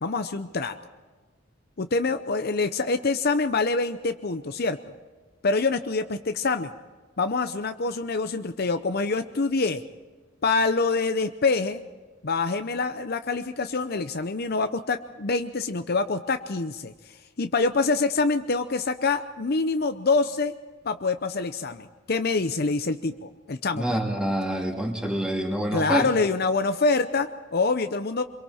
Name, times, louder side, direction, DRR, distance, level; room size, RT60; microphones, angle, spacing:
voice 1, 0.0-0.8 1.8-4.8 5.4-6.7 7.2-9.8 10.4-11.8 12.2-20.5 20.8-24.0 25.7-28.2, left 3 dB, 50° left, 8 dB, 0.7 m, -26 dB
voice 2, 23.7-26.1, right 1 dB, 5° right, 0 dB, 2.7 m, -26 dB
26.0 x 23.0 x 4.4 m, 1.3 s
head